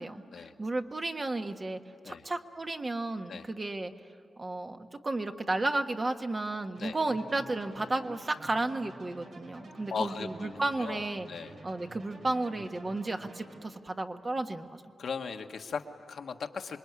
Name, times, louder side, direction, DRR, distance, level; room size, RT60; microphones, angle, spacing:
voice 1, 0.0-3.9 4.4-11.3 11.6-14.7, right 2 dB, 35° right, 6 dB, 1.4 m, -33 dB
sound 1, 6.7-13.6, right 2 dB, 90° right, 5.6 m, -50 dB
voice 2, 9.9-11.5 15.0-16.8, left 5 dB, 75° left, 4 dB, 1.5 m, -38 dB
27.0 x 21.5 x 9.7 m, 2.4 s
wide cardioid pair, 95°, 0 cm